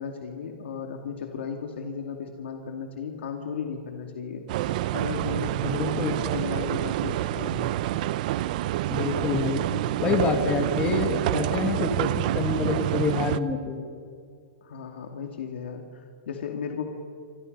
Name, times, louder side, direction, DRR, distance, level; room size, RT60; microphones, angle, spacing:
voice 1, 0.0-4.4 4.9-7.7 14.6-16.9, left 6 dB, 85° left, 4 dB, 2.5 m, -35 dB
sound 1, 4.5-13.4, right 14 dB, 45° right, 0.6 m, -27 dB
voice 2, 5.6-6.7 8.9-9.6 10.0-13.8, left 5 dB, 20° left, 5 dB, 1.9 m, -27 dB
29.0 x 27.0 x 5.5 m, 2.3 s
supercardioid pair, 165°, 6 cm